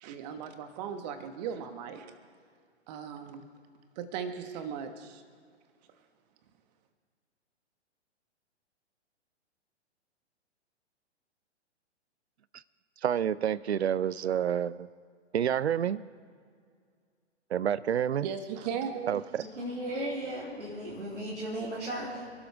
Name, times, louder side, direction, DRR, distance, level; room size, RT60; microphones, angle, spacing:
voice 1, 0.0-2.1 2.9-3.4 4.0-5.2 18.2-19.1, right 7 dB, 35° right, 7 dB, 1.6 m, -37 dB
voice 2, 13.0-14.9 15.3-16.0 17.5-18.3 19.1-19.4, right 9 dB, 65° right, 20 dB, 0.6 m, -28 dB
voice 3, 19.6-22.3, right 1 dB, 85° right, -6 dB, 3.4 m, -36 dB
27.5 x 12.5 x 3.5 m, 2.1 s
figure-of-eight pair, 115°, 35 cm